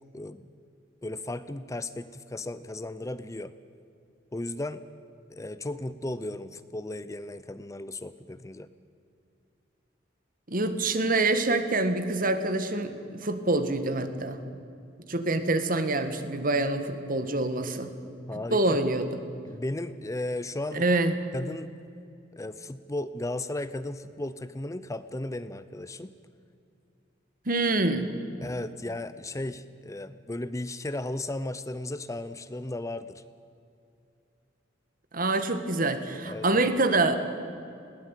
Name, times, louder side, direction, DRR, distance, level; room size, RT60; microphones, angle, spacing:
voice 1, 0.1-0.5 1.0-3.5 4.3-4.8 5.3-8.7 18.3-18.8 19.4-20.9 21.3-21.7 22.3-26.1 28.4-33.2 36.2-36.6, left 1 dB, 15° left, 13 dB, 0.6 m, -35 dB
voice 2, 10.5-14.4 15.1-17.9 18.5-19.1 20.7-21.1 27.5-28.1 35.1-37.2, right 2 dB, 50° right, 9 dB, 1.7 m, -26 dB
20.5 x 17.5 x 9.1 m, 2.6 s
head